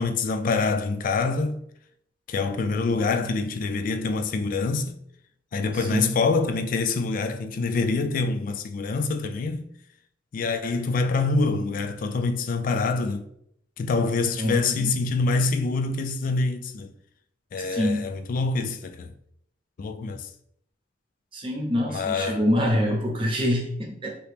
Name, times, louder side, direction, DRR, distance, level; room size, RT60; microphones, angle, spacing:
voice 1, 0.0-1.6 2.3-5.0 5.5-9.7 10.3-13.3 13.8-16.9 17.5-19.1 19.8-20.3 21.9-22.5, left 3 dB, 50° left, 0.3 m, -25 dB
voice 2, 5.7-6.1 14.4-14.9 17.6-18.1 21.3-24.1, equal, 30° right, 0.8 m, -26 dB
2.9 x 2.8 x 3.4 m
head